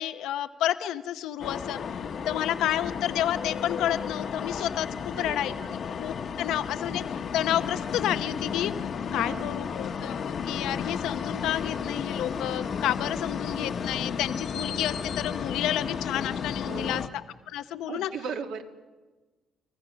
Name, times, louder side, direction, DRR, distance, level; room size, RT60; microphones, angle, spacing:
voice 1, 0.0-1.8 2.3-17.0 17.5-18.1, left 12 dB, 85° left, 11 dB, 0.8 m, -30 dB
sound 1, 1.4-17.1, left 6 dB, 40° left, 1.0 m, -33 dB
voice 2, 5.1-5.7 9.1-9.5 16.6-17.0 17.9-18.6, right 6 dB, 70° right, 5 dB, 2.0 m, -37 dB
29.0 x 20.5 x 6.3 m, 1.3 s
cardioid pair, 165°, 0 cm